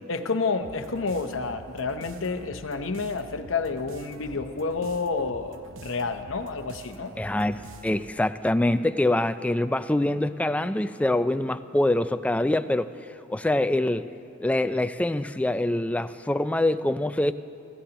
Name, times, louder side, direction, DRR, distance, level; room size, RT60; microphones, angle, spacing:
voice 1, 0.1-7.1, left 4 dB, 80° left, 8 dB, 0.8 m, -29 dB
sound 1, 0.6-8.3, right 3 dB, 80° right, 0.7 m, -46 dB
voice 2, 7.2-12.9 13.3-14.1 14.4-17.3, left 1 dB, 5° left, 12 dB, 0.3 m, -25 dB
25.5 x 15.0 x 2.9 m, 2.9 s
head